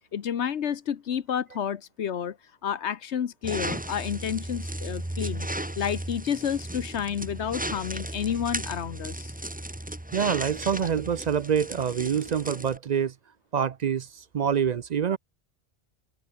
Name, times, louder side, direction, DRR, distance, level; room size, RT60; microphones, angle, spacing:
voice 1, 0.1-5.5 5.8-9.3, left 8 dB, 90° left, 1.3 m, -30 dB
sound 1, 3.4-12.8, right 1 dB, 10° right, 1.2 m, -35 dB
voice 2, 10.1-13.1 13.5-15.2, right 8 dB, 55° right, 0.5 m, -26 dB
omnidirectional pair, 1.1 m